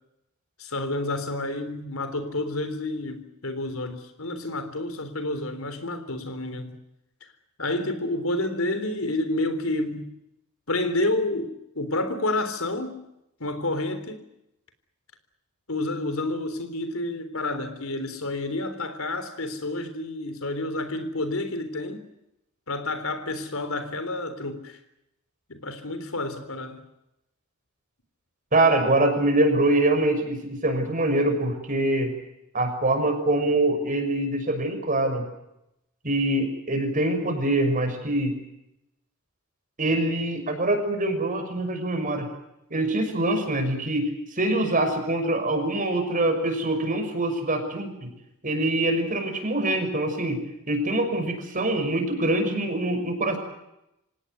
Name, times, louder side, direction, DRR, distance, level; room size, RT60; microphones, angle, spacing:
voice 1, 0.6-6.8 7.6-10.1 10.7-13.0 13.4-14.2 15.7-22.1 22.7-24.8 25.5-26.8, left 2 dB, 80° left, 3.7 m, -29 dB
voice 2, 28.5-32.1 32.5-35.2 36.0-38.3 39.8-42.3 42.7-48.1 48.4-50.4 50.7-53.4, right 1 dB, 40° right, 6.2 m, -24 dB
27.0 x 18.0 x 9.6 m
head